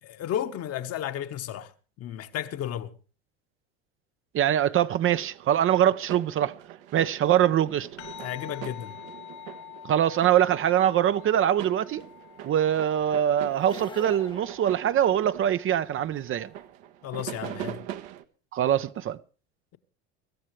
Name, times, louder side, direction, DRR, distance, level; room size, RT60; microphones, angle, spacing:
voice 1, 0.0-1.7 2.0-2.9 8.2-9.0 17.0-17.8, left 10 dB, 50° left, 1.4 m, -33 dB
voice 2, 4.3-6.5 6.9-7.9 9.8-12.0 12.4-16.5 18.5-19.2, right 10 dB, 40° right, 0.8 m, -23 dB
sound 1, 5.0-18.2, right 12 dB, 70° right, 1.3 m, -43 dB
sound 2, 8.0-16.7, left 12 dB, 85° left, 6.3 m, -48 dB
sound 3, 13.6-15.6, left 4 dB, 15° left, 0.8 m, -44 dB
24.5 x 13.5 x 3.3 m
hypercardioid pair, 80°, 32 cm